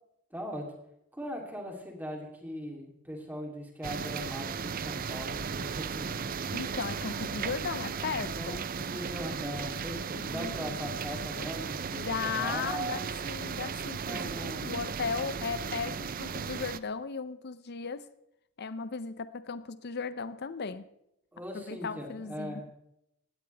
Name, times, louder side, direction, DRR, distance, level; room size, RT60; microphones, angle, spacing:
voice 1, 0.3-0.7 1.1-6.5 8.4-13.0 14.0-14.7 21.3-22.6, equal, 10° right, 1 dB, 3.1 m, -40 dB
sound 1, 3.8-16.8, right 6 dB, 40° right, 0.5 m, -36 dB
voice 2, 6.5-8.6 10.2-11.0 11.4-11.5 11.9-18.1 18.6-20.8 21.5-22.5, left 5 dB, 50° left, 14 dB, 0.6 m, -36 dB
Clock, 8.2-8.4 9.0-9.1 9.7-9.8 10.4-10.6 11.2-11.3 11.9-12.1 12.7-12.8 13.4-13.5, right 6 dB, 65° right, 4.0 m, -56 dB
19.0 x 16.0 x 3.4 m, 0.80 s
head